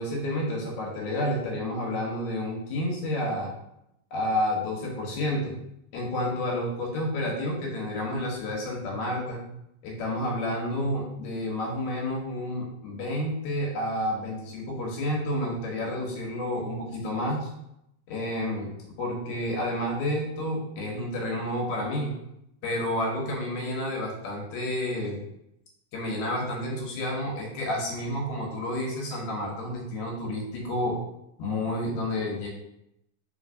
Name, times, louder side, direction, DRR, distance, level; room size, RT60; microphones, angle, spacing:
voice 1, 0.0-3.5 4.1-5.6 5.9-9.5 9.8-17.5 18.1-18.7 19.0-22.1 22.6-25.2 25.9-31.0 31.4-32.5, left 1 dB, 70° left, -1 dB, 2.2 m, -30 dB
4.3 x 3.8 x 2.5 m, 0.81 s
omnidirectional pair, 3.6 m